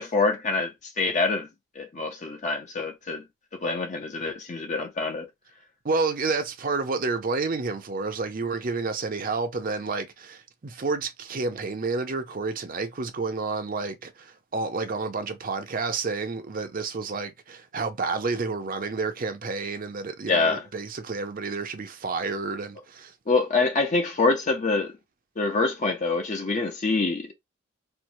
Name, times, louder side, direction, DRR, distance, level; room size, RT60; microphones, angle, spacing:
voice 1, 0.0-1.5 1.8-3.2 3.5-5.3 20.3-20.6 23.3-24.9 25.4-27.3, left 3 dB, 35° left, 0.5 m, -25 dB
voice 2, 5.8-23.1, right 4 dB, 40° right, 0.6 m, -30 dB
4.4 x 2.1 x 2.6 m
head